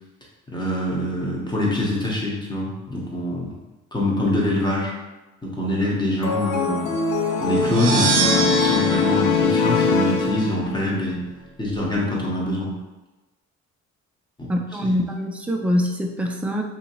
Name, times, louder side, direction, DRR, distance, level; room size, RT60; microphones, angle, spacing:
voice 1, 0.5-3.5 3.9-4.9 5.4-6.9 7.4-11.2 11.6-12.7 14.4-14.5 14.8-15.0, left 1 dB, 15° left, -4 dB, 0.9 m, -24 dB
sound 1, 6.2-10.9, left 5 dB, 85° left, 0.5 m, -22 dB
sound 2, 7.5-10.4, right 5 dB, 90° right, 0.5 m, -25 dB
voice 2, 14.5-16.6, equal, 5° right, 1 dB, 0.3 m, -24 dB
2.8 x 2.7 x 2.9 m, 1.1 s
cardioid pair, 90°, 30 cm